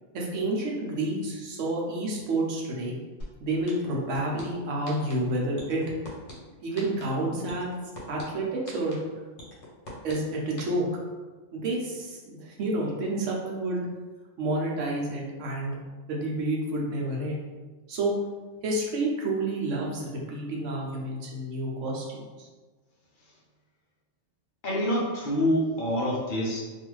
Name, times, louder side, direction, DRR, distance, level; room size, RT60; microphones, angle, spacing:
voice 1, 0.1-3.0 3.4-5.8 6.6-7.7 8.1-9.0 10.0-10.8 11.5-13.9 14.4-15.8 16.1-17.4 17.9-18.1 18.6-22.0 22.4-22.5, right 2 dB, 75° right, -2 dB, 1.0 m, -29 dB
sound 1, 3.2-3.3 3.7-4.4 4.9-5.1 5.6-6.3 6.8-7.0 7.5-8.2 8.7-8.9 9.4-10.1 10.6-10.7, left 1 dB, 75° left, 1.2 m, -41 dB
voice 2, 24.6-26.6, equal, 55° left, -5 dB, 0.6 m, -26 dB
2.6 x 2.4 x 3.0 m, 1.3 s
omnidirectional pair, 1.3 m